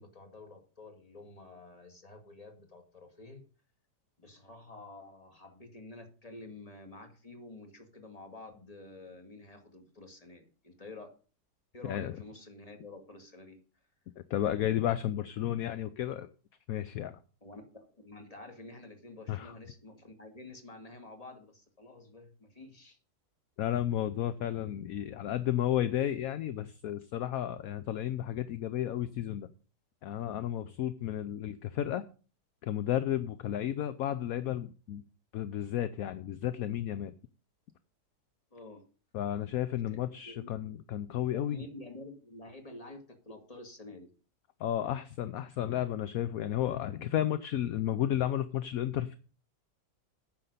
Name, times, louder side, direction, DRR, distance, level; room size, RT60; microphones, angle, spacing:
voice 1, 0.0-3.5 4.2-11.1 11.7-13.6 17.4-23.0 38.5-38.9 39.7-40.7 41.3-44.1, left 2 dB, 20° left, 4 dB, 2.2 m, -49 dB
voice 2, 14.2-16.3 16.7-17.2 19.3-19.5 23.6-29.5 30.0-32.0 32.6-35.0 35.3-37.1 39.1-41.6 44.6-49.2, left 11 dB, 65° left, 13 dB, 1.0 m, -32 dB
9.6 x 6.6 x 6.8 m, 0.36 s
omnidirectional pair, 1.9 m